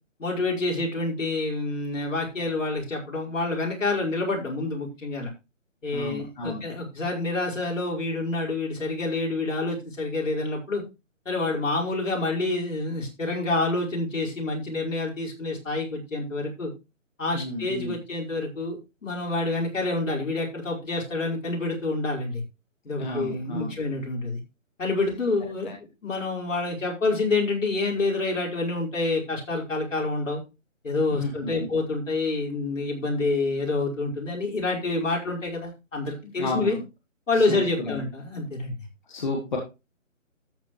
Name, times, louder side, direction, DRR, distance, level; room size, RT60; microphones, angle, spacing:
voice 1, 0.2-5.3 5.8-10.8 11.3-16.7 17.2-22.4 22.8-24.4 24.8-25.7 26.0-30.4 30.8-36.8 37.3-38.7, left 2 dB, 70° left, -2 dB, 5.3 m, -27 dB
voice 2, 5.9-6.6 17.3-18.0 23.0-23.7 25.6-25.8 31.1-31.5 36.4-36.8 37.3-38.0 39.1-39.6, left 2 dB, 35° left, 0 dB, 1.9 m, -32 dB
13.5 x 8.2 x 3.2 m, 0.27 s
hypercardioid pair, 170°, 40 cm